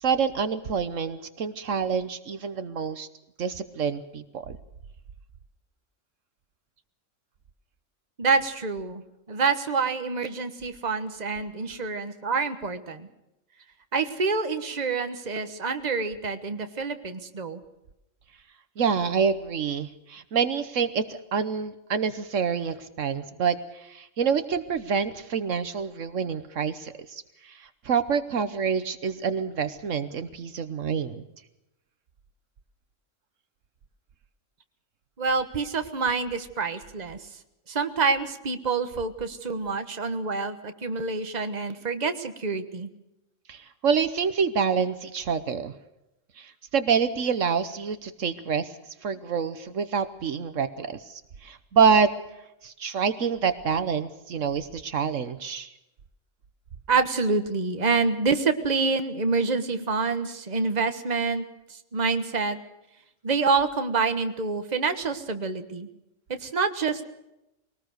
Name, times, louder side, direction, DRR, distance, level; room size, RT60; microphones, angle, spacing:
voice 1, 0.0-3.1 3.4-4.6 18.8-31.2 43.5-45.7 46.4-48.7 49.0-52.1 52.6-55.7, right 6 dB, 75° right, 11 dB, 1.4 m, -27 dB
voice 2, 8.2-9.0 9.3-13.1 13.9-17.6 35.2-37.2 37.7-42.9 56.9-62.6 63.2-65.9 66.3-67.0, right 4 dB, 35° right, 8 dB, 1.4 m, -27 dB
22.5 x 19.0 x 6.5 m, 0.89 s
omnidirectional pair, 1.3 m